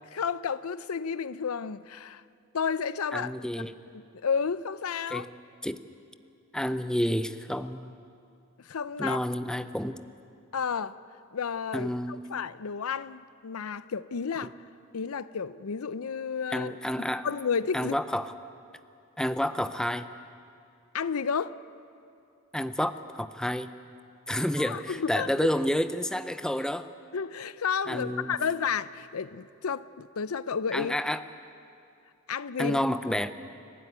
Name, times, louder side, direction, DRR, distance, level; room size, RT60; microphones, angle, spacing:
voice 1, 0.1-2.2 2.5-3.4 3.9-5.3 8.6-9.2 10.5-11.0 11.3-14.5 14.9-16.7 17.2-17.9 20.9-21.6 24.6-25.3 27.1-31.0 32.3-32.8, left 6 dB, 75° left, 0.6 m, -31 dB
voice 2, 3.1-3.7 5.1-5.3 5.6-5.8 6.5-7.9 9.0-10.0 11.7-12.3 16.5-17.3 17.7-18.3 19.2-20.1 22.5-23.7 24.3-26.9 27.9-28.3 30.7-31.2 32.6-33.3, equal, 5° left, 0.5 m, -29 dB
30.0 x 12.5 x 9.4 m
head